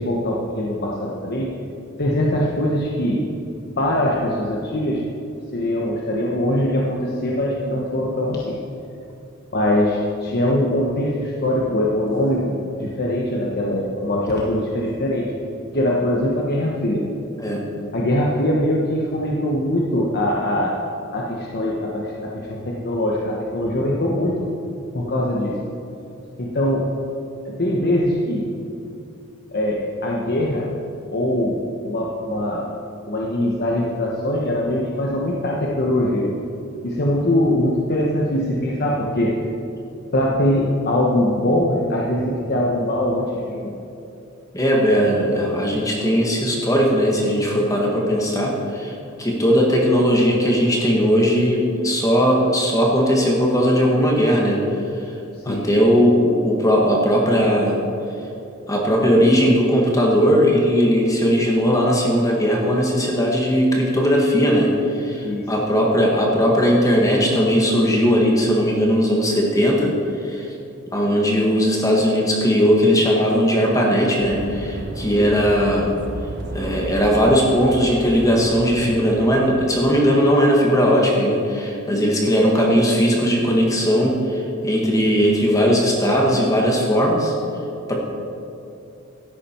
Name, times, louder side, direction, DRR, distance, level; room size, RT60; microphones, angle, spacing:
voice 1, 0.0-1.5 2.0-3.2 3.8-5.0 5.5-8.6 9.5-15.3 15.7-17.1 17.9-20.7 21.1-24.3 24.9-25.6 26.4-26.9 27.4-28.5 29.5-30.7 31.1-32.7 33.1-36.3 36.8-39.4 40.1-43.7 55.3-55.6 65.2-65.5 75.2-75.3, left 1 dB, 50° left, -3 dB, 1.1 m, -22 dB
voice 2, 44.5-54.6 55.4-57.8 58.7-69.9 70.2-70.5 70.9-75.9 76.5-87.3 87.9-88.0, equal, 15° left, -2 dB, 1.5 m, -18 dB
sound 1, 74.2-80.1, right 1 dB, 55° right, 0.9 m, -33 dB
13.5 x 11.0 x 4.5 m, 2.6 s
head